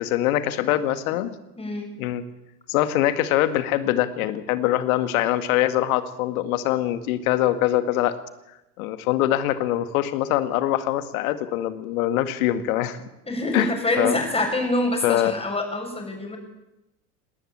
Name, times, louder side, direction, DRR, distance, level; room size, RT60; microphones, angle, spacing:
voice 1, 0.0-1.4 2.0-2.2 2.7-8.2 8.8-13.0 13.5-13.7 14.0-14.2 15.0-15.3, left 13 dB, 60° left, 12 dB, 2.0 m, -23 dB
voice 2, 1.6-1.9 13.3-16.4, left 1 dB, 10° left, 3 dB, 7.1 m, -26 dB
19.0 x 19.0 x 8.7 m, 0.94 s
figure-of-eight pair, 80°, 47 cm